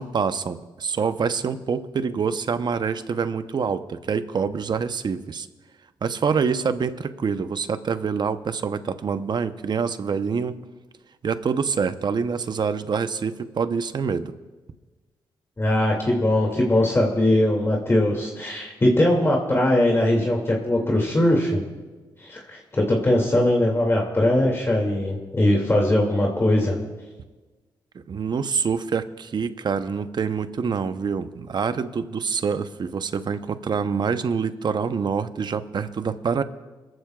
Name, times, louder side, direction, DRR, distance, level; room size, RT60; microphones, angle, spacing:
voice 1, 0.0-5.5 6.0-10.6 11.2-14.3 28.1-36.4, right 6 dB, 55° right, 11 dB, 0.8 m, -26 dB
voice 2, 15.6-21.6 22.2-26.8, left 1 dB, 30° left, -1 dB, 2.4 m, -21 dB
22.0 x 14.0 x 2.4 m, 1.3 s
cardioid pair, 60°, 9 cm